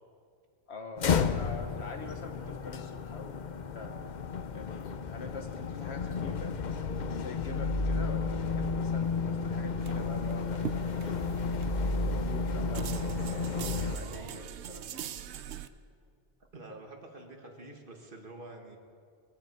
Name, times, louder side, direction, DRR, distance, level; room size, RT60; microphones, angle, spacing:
voice 1, 0.7-4.0 4.5-6.6 7.2-11.4 11.9-15.0, left 3 dB, 70° left, 5 dB, 1.6 m, -45 dB
sound 1, 1.0-14.0, left 4 dB, 50° left, 0.7 m, -32 dB
sound 2, 9.8-15.7, right 10 dB, 80° right, 0.9 m, -42 dB
voice 2, 16.5-18.8, right 2 dB, 50° right, 2 dB, 1.9 m, -47 dB
21.5 x 14.5 x 4.6 m, 2.3 s
omnidirectional pair, 1.1 m